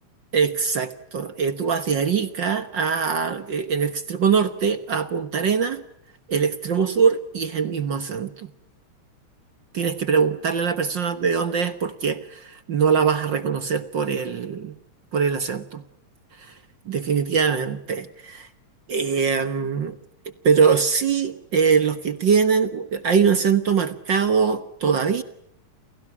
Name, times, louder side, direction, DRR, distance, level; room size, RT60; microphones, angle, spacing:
voice 1, 0.3-5.8 6.3-8.5 9.7-14.7 15.1-15.8 16.4-16.5 16.9-18.5 18.9-20.0 20.4-25.2, right 6 dB, 50° right, 11 dB, 1.5 m, -22 dB
30.0 x 28.5 x 6.0 m, 0.74 s
omnidirectional pair, 3.3 m